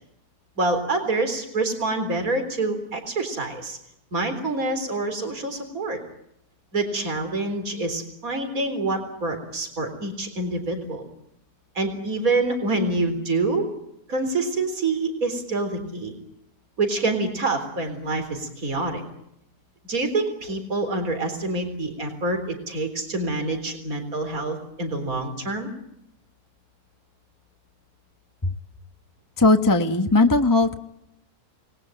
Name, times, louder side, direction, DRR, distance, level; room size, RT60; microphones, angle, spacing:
voice 1, 0.6-3.8 4.1-6.0 6.7-11.1 11.8-13.7 14.1-16.2 16.8-19.0 19.9-25.7, right 2 dB, 65° right, 7 dB, 4.3 m, -26 dB
voice 2, 29.4-30.8, left 2 dB, 15° left, 5 dB, 1.3 m, -18 dB
28.5 x 20.5 x 9.2 m, 0.79 s
omnidirectional pair, 1.6 m